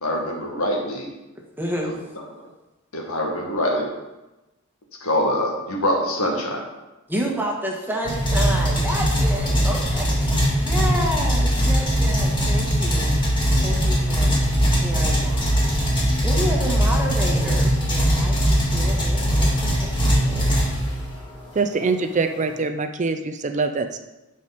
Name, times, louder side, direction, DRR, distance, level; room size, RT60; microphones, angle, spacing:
voice 1, 0.0-1.1 1.8-1.9 2.9-3.9 5.0-6.6, left 1 dB, 90° left, 0 dB, 1.9 m, -24 dB
voice 2, 1.6-1.9 7.1-13.1 13.6-14.3 14.7-15.5 16.2-20.6, equal, 10° right, -1 dB, 1.5 m, -30 dB
sound 1, 8.0-21.2, equal, 25° left, 2.0 m, -20 dB
voice 3, 21.5-24.0, right 4 dB, 35° right, 8 dB, 0.5 m, -24 dB
11.5 x 5.2 x 4.1 m, 1.0 s
head